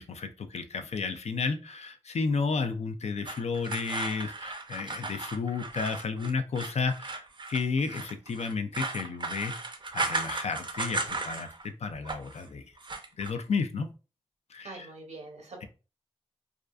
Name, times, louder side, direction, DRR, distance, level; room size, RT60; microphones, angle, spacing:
voice 1, 0.0-9.5 9.9-12.6 13.2-13.9 14.5-14.9 15.6-15.7, left 4 dB, 75° left, 8 dB, 0.4 m, -32 dB
sound 1, 3.3-11.7 11.9-12.4 12.8-13.3, right 3 dB, 45° right, 0.4 m, -36 dB
voice 2, 14.6-15.7, right 3 dB, 90° right, 2 dB, 0.8 m, -44 dB
2.4 x 2.3 x 2.3 m, 0.32 s
cardioid pair, 50°, 11 cm